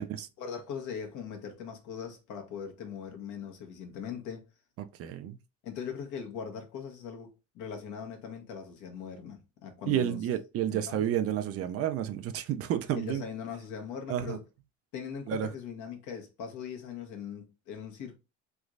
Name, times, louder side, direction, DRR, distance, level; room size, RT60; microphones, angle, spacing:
voice 1, 0.4-4.5 5.6-10.2 10.7-11.0 12.9-14.4 14.9-18.2, left 7 dB, 60° left, 1.1 m, -40 dB
voice 2, 4.8-5.4 9.9-13.2 14.1-14.4 15.3-15.5, right 10 dB, 45° right, 0.4 m, -31 dB
3.3 x 3.0 x 2.4 m
supercardioid pair, 105°, 33 cm